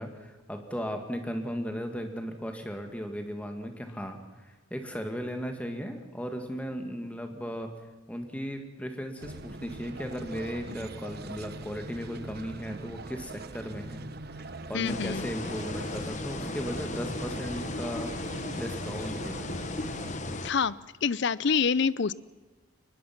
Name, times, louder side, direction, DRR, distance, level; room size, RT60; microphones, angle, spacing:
voice 1, 0.0-4.2 4.5-7.7 8.1-14.1 14.3-18.1 18.6-19.5, equal, 5° left, 5 dB, 2.0 m, -36 dB
sound 1, 9.2-20.1, right 2 dB, 50° right, 1.0 m, -43 dB
voice 2, 14.7-15.3 20.4-20.7 21.0-22.1, left 5 dB, 55° left, 19 dB, 0.5 m, -26 dB
sound 2, 14.9-20.5, left 2 dB, 35° left, 1.1 m, -36 dB
23.0 x 20.5 x 6.0 m, 1.3 s
head